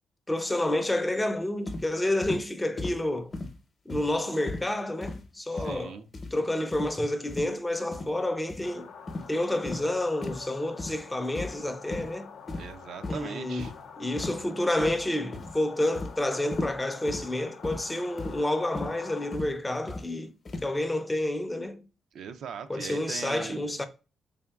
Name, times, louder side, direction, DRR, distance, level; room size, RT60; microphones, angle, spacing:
voice 1, 0.3-3.3 3.9-6.0 6.3-8.9 9.3-12.3 13.1-13.7 14.0-20.3 20.6-21.9 22.7-23.9, left 1 dB, 10° left, 0.4 m, -29 dB
sound 1, 1.7-1.9 2.2-2.4 2.8-3.0 3.3-3.6 3.9-4.2 4.5-4.7 5.0-5.2 5.6-5.8 6.1-6.4 6.7-6.9 7.3-7.5 7.9-8.1 8.5-8.7 9.1-9.3 9.6-9.8 10.2-10.4 10.8-11.0 11.3-11.6 11.9-12.1 12.5-12.7 13.0-13.2 13.6-13.7 14.2-14.4 14.8-15.1 15.3-15.6 15.9-16.1 16.5-16.8 17.1-17.3 17.6-17.8 18.2-18.4 18.7-18.9 19.3-19.5 19.9-20.1 20.4-20.7, left 2 dB, 35° left, 0.7 m, -36 dB
voice 2, 5.4-6.1 12.6-13.7 22.1-23.8, right 7 dB, 75° right, 0.4 m, -40 dB
sound 2, 8.6-19.4, left 6 dB, 80° left, 0.6 m, -47 dB
3.7 x 3.5 x 2.3 m
cardioid pair, 125°, 0 cm